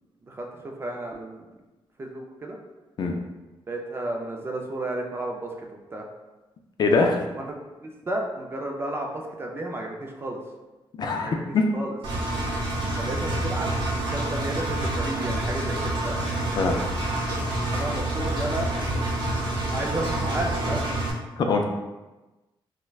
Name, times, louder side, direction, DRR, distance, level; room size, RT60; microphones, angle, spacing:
voice 1, 0.2-1.5 2.0-2.6 3.7-5.5 5.9-6.1 7.3-7.5 7.8-10.4 11.2-11.4 11.7-11.9 13.0-16.2 17.7-18.7 19.7-20.9, right 1 dB, 25° right, 1 dB, 0.4 m, -32 dB
voice 2, 6.8-7.3 11.0-11.7 16.6-16.8 21.4-21.6, left 3 dB, 50° left, 3 dB, 0.3 m, -22 dB
Engine, 12.0-21.1, right 1 dB, 55° right, 0.7 m, -27 dB
4.3 x 2.1 x 2.3 m, 1.1 s
wide cardioid pair, 155°, 9 cm